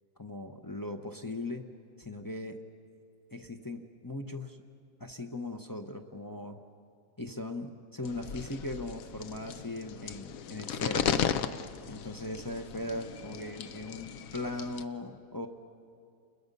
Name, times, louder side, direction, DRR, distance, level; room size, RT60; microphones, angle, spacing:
voice 1, 0.2-1.6 2.0-2.6 3.3-4.6 5.0-6.6 7.2-11.2 11.9-15.5, left 2 dB, 20° left, 3 dB, 0.6 m, -39 dB
sound 1, 8.0-14.8, left 8 dB, 65° left, 1.1 m, -36 dB
29.5 x 21.5 x 5.4 m, 2.4 s
omnidirectional pair, 1.7 m